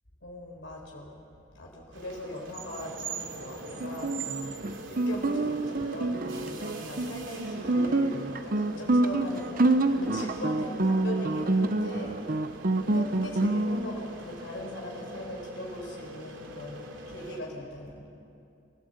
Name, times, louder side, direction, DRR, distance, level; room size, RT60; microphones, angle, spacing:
voice 1, 0.2-1.2 1.5-4.2 5.1-12.2 12.9-18.1, left 1 dB, 70° left, -2 dB, 4.4 m, -40 dB
sound 1, 1.9-17.4, right 3 dB, 80° right, 2.7 m, -42 dB
Guitar, 3.8-13.8, right 2 dB, 45° right, 0.9 m, -27 dB
26.0 x 15.5 x 8.0 m, 2.5 s
head